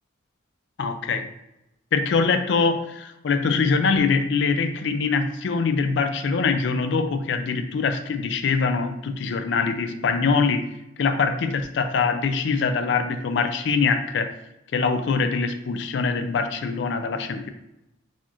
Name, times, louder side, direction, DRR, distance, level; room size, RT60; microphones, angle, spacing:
voice 1, 0.8-1.3 1.9-10.6 11.0-14.3 14.7-17.5, left 4 dB, 60° left, 8 dB, 0.4 m, -23 dB
4.1 x 2.5 x 3.0 m, 0.88 s
head